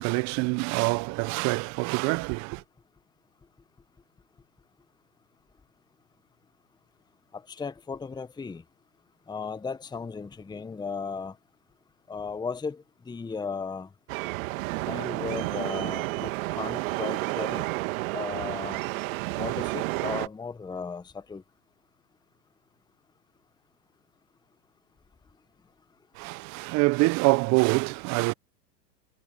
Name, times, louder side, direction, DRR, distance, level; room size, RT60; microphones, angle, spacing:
voice 1, 0.0-2.6 26.2-28.3, right 27 dB, 35° right, 0.8 m, -25 dB
voice 2, 7.3-8.6 9.3-11.3 12.1-13.9 14.9-17.7 18.1-18.8 19.4-21.4, left 5 dB, 10° left, 1.2 m, -36 dB
sound 1, 14.1-20.3, right 23 dB, 55° right, 1.9 m, -31 dB
hypercardioid pair, 105°, 50 cm